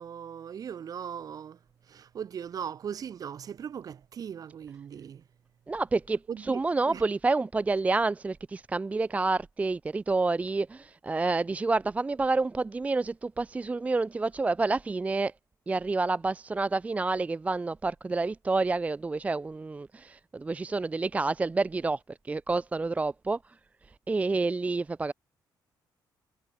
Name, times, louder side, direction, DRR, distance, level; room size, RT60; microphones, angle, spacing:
voice 1, 0.0-1.6 1.9-5.2 6.3-7.0, right 8 dB, 50° right, 3.8 m, -39 dB
voice 2, 5.7-15.3 15.7-23.6 24.1-25.1, right 3 dB, 15° right, 0.5 m, -28 dB
cardioid pair, 140°, 8 cm